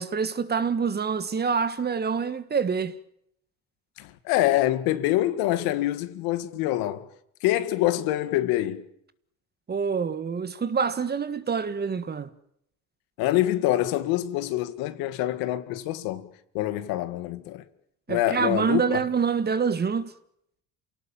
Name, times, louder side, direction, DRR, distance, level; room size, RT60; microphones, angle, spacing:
voice 1, 0.0-2.9 9.7-12.3 18.1-20.1, right 6 dB, 30° right, 1.7 m, -26 dB
voice 2, 4.0-7.1 7.4-8.9 13.2-16.3 16.5-17.6 18.1-19.0, left 14 dB, 80° left, 2.0 m, -25 dB
28.0 x 18.0 x 9.1 m
cardioid pair, 105°, 35 cm